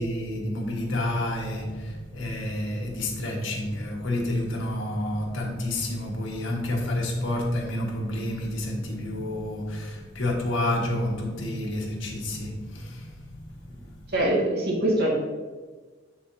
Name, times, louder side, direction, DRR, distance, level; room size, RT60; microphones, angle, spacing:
voice 1, 0.0-13.9, left 1 dB, 80° left, 0 dB, 1.4 m, -29 dB
voice 2, 14.1-15.1, right 1 dB, 55° right, -3 dB, 1.8 m, -23 dB
7.4 x 6.8 x 2.7 m, 1.3 s
head